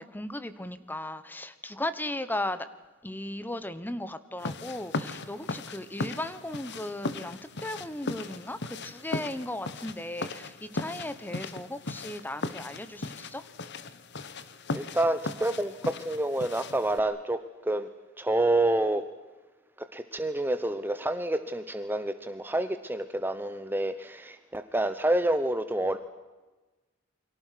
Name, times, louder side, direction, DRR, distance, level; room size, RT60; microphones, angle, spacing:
voice 1, 0.0-2.7 3.0-13.5, left 1 dB, 10° left, 13 dB, 1.2 m, -36 dB
sound 1, 4.4-17.0, left 3 dB, 60° left, 1.3 m, -38 dB
voice 2, 14.7-17.9 18.2-19.0 19.9-26.0, right 1 dB, 10° right, 10 dB, 0.9 m, -28 dB
29.0 x 24.0 x 5.9 m, 1.2 s
head